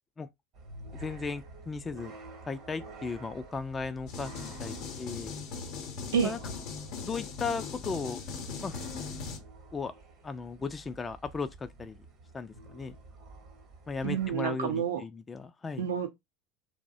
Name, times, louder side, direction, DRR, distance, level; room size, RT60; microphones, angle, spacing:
sound 1, 0.5-14.3, right 2 dB, 50° right, 0.9 m, -49 dB
voice 1, 0.9-2.1 2.5-5.3 6.2-6.4 7.0-8.2 8.6-8.8 9.7-9.9 10.2-12.0 12.3-12.9 13.9-15.9, left 4 dB, 25° left, 0.3 m, -36 dB
sound 2, 4.1-9.4, left 5 dB, 55° left, 0.7 m, -39 dB
voice 2, 14.0-15.0 15.8-16.1, right 7 dB, 80° right, 0.6 m, -29 dB
2.6 x 2.1 x 2.5 m
hypercardioid pair, 80°, 0 cm